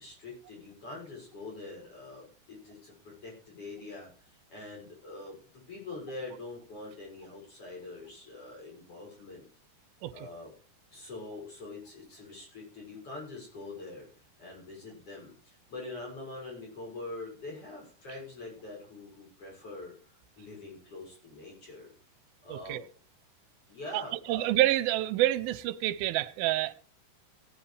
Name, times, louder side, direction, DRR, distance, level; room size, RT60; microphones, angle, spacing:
voice 1, 0.0-9.4 10.1-10.5 10.9-19.9 20.4-21.9 22.4-22.9 23.7-24.5, left 2 dB, 40° left, 7.4 m, -44 dB
voice 2, 22.5-22.8 23.9-24.0 24.3-26.7, right 15 dB, 80° right, 2.5 m, -27 dB
17.5 x 10.5 x 3.3 m
omnidirectional pair, 4.3 m